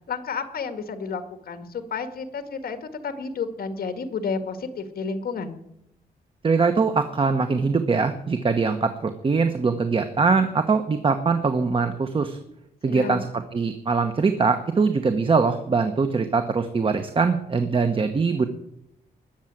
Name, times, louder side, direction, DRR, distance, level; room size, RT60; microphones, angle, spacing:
voice 1, 0.1-5.6 12.8-13.2, left 5 dB, 65° left, 8 dB, 1.9 m, -31 dB
voice 2, 6.4-12.4 12.8-18.5, right 4 dB, 30° right, 8 dB, 1.0 m, -22 dB
20.5 x 7.2 x 8.9 m, 0.79 s
wide cardioid pair, 145°, 17 cm